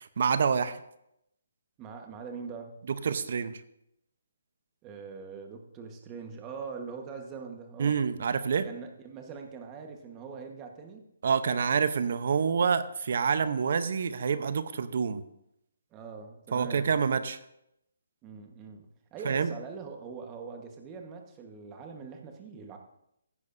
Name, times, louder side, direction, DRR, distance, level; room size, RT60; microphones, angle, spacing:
voice 1, 0.2-0.8 2.9-3.6 7.8-8.7 11.2-15.2 16.5-17.4 19.2-19.5, right 6 dB, 55° right, 13 dB, 0.8 m, -27 dB
voice 2, 1.8-2.8 4.8-8.0 8.6-11.0 15.9-16.9 18.2-22.8, right 5 dB, 20° right, 4 dB, 1.3 m, -42 dB
15.5 x 9.3 x 2.7 m, 0.80 s
hypercardioid pair, 160°, 0 cm